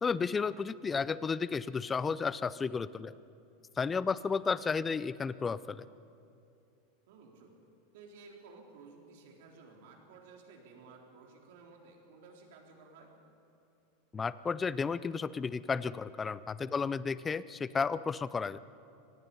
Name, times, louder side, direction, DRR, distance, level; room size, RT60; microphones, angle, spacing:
voice 1, 0.0-3.1 3.8-5.8 14.1-18.6, left 5 dB, 15° left, 17 dB, 0.4 m, -33 dB
voice 2, 4.0-4.4 7.1-7.5 7.9-13.1 16.7-16.9, right 4 dB, 65° right, 0 dB, 3.9 m, -55 dB
25.0 x 19.0 x 5.5 m, 2.7 s
supercardioid pair, 160°, 0 cm